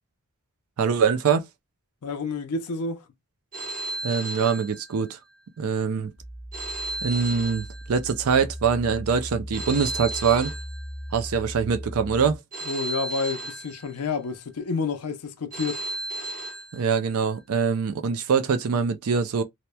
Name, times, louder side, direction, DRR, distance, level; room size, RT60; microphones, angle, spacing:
voice 1, 0.8-1.5 4.0-5.2 5.6-6.1 7.0-10.5 11.1-12.4 16.7-19.4, right 6 dB, 75° right, 0.4 m, -24 dB
voice 2, 2.0-3.0 12.6-15.8, left 4 dB, 85° left, 0.5 m, -29 dB
Telephone, 3.5-5.4 6.5-8.4 9.5-11.4 12.5-14.4 15.5-17.4, right 1 dB, 35° right, 1.0 m, -35 dB
sound 1, 6.2-12.4, equal, ahead, 0.3 m, -38 dB
2.8 x 2.1 x 2.2 m
head